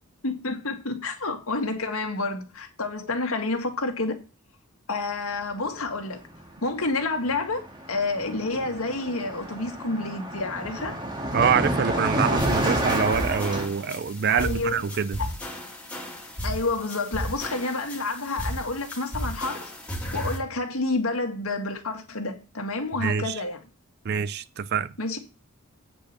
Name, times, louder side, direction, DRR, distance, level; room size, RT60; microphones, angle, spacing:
voice 1, 0.2-4.2 4.9-6.2 6.6-11.0 14.3-14.8 15.2-15.3 16.4-19.7 20.1-23.6 25.0-25.2, left 3 dB, 75° left, 1.9 m, -29 dB
Car passing by, 6.2-6.4 6.7-13.7, right 1 dB, 20° right, 1.6 m, -29 dB
voice 2, 11.3-15.2 23.0-23.4 24.1-24.9, right 6 dB, 45° right, 0.4 m, -25 dB
sound 1, 12.4-20.4, equal, 5° left, 2.1 m, -34 dB
8.7 x 5.2 x 6.7 m
head